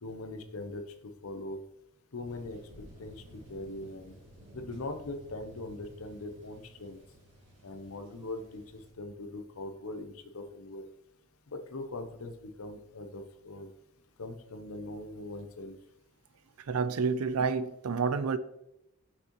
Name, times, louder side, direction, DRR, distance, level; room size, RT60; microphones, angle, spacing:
voice 1, 0.0-1.6 2.1-2.6 3.0-4.1 4.5-7.0 7.6-10.8 11.5-13.7 14.2-15.8, left 2 dB, 75° left, 7 dB, 0.7 m, -41 dB
Thunder, 2.2-8.9, right 1 dB, 55° right, 2.3 m, -54 dB
voice 2, 16.7-18.4, right 5 dB, 90° right, 13 dB, 0.5 m, -29 dB
6.4 x 6.0 x 3.1 m, 0.82 s
head